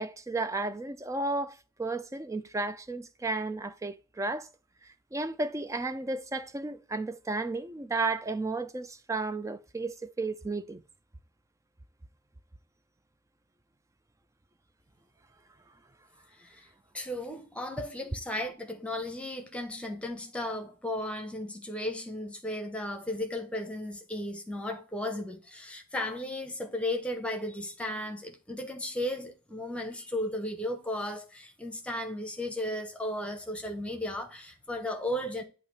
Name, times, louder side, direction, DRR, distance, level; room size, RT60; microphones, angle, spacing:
voice 1, 0.0-4.5 5.1-10.8, right 3 dB, 15° right, 0.3 m, -33 dB
voice 2, 16.9-35.4, left 1 dB, 5° left, 0.9 m, -35 dB
8.2 x 2.8 x 5.5 m
head